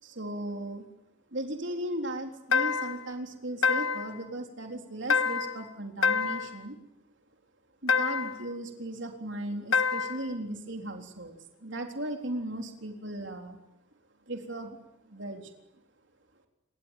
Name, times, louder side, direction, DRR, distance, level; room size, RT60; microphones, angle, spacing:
voice 1, 0.0-0.9 1.3-6.8 7.8-13.6 14.3-15.5, right 1 dB, 60° right, 3 dB, 3.9 m, -37 dB
sound 1, 2.5-3.1 3.6-4.2 5.1-5.6 6.0-6.6 7.9-8.4 9.7-10.3, left 5 dB, 85° left, 1.2 m, -27 dB
27.5 x 22.0 x 9.2 m, 0.90 s
head